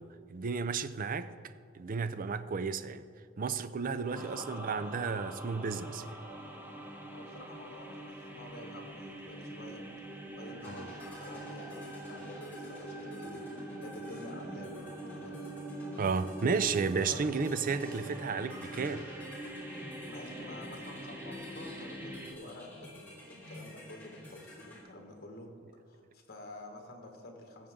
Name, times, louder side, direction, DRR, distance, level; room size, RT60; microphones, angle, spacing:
voice 1, 0.0-1.3 1.7-3.0 3.4-6.2 10.6-10.9 16.0-19.1, right 5 dB, 45° right, 0.4 m, -33 dB
voice 2, 4.1-4.8 7.1-9.9 10.3-13.4 13.8-15.5 17.0-17.2 20.1-25.5 25.9-27.7, left 2 dB, 55° left, 1.6 m, -49 dB
sound 1, 4.1-22.3, right 1 dB, 10° right, 0.9 m, -44 dB
sound 2, 10.6-24.8, equal, 10° left, 2.8 m, -50 dB
17.0 x 7.2 x 3.7 m
head